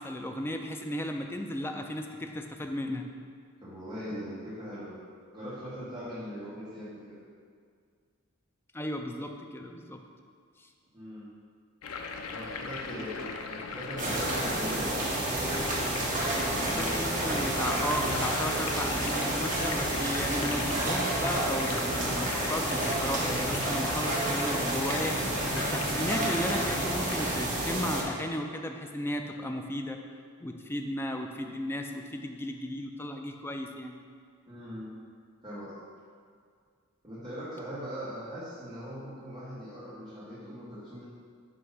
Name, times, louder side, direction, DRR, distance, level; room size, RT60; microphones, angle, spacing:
voice 1, 0.0-3.1 8.7-10.0 10.6-10.7 13.2-13.3 16.6-25.2 25.5-30.0 30.4-34.0, left 1 dB, 10° left, 3 dB, 0.4 m, -35 dB
voice 2, 3.6-5.0 5.3-7.2 10.9-11.3 12.2-14.9 16.3-16.9 34.5-34.9 35.4-35.7 37.0-41.0, equal, 20° right, -12 dB, 1.4 m, -41 dB
sound 1, 11.8-27.5, left 4 dB, 80° left, 0.5 m, -38 dB
sound 2, 14.0-28.0, right 2 dB, 35° right, 1.2 m, -30 dB
7.7 x 2.9 x 5.4 m, 2.1 s
head